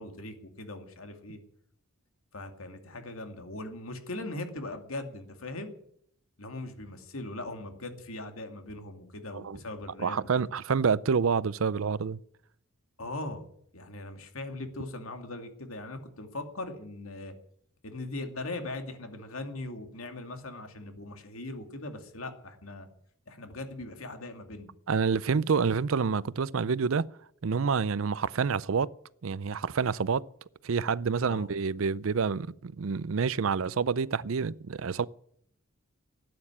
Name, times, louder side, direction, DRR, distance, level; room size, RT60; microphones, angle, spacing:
voice 1, 0.0-1.4 2.3-5.7 6.4-10.2 13.0-13.4 13.7-17.3 17.8-22.9 23.3-24.7 31.3-31.5, left 2 dB, 75° left, 2.5 m, -40 dB
voice 2, 10.0-12.2 24.9-27.0 27.4-28.9 29.2-30.3 30.6-35.1, right 5 dB, 70° right, 0.5 m, -28 dB
13.0 x 9.5 x 9.8 m
head